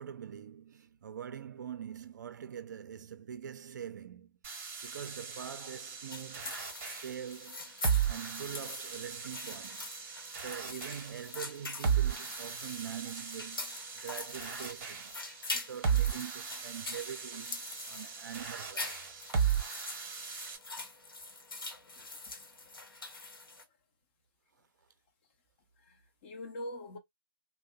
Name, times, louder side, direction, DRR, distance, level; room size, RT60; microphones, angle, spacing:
voice 1, 0.0-4.4 4.8-6.5 7.0-7.7 8.1-10.0 10.3-15.1 15.5-17.6 17.9-19.3, right 8 dB, 50° right, 0.5 m, -44 dB
sound 1, 4.4-20.6, right 7 dB, 35° right, 0.8 m, -36 dB
sound 2, 6.1-23.6, left 3 dB, 75° left, 1.0 m, -44 dB
voice 2, 22.9-23.3 25.8-27.0, left 1 dB, 30° left, 0.7 m, -44 dB
2.6 x 2.1 x 2.2 m
figure-of-eight pair, 140°, 12 cm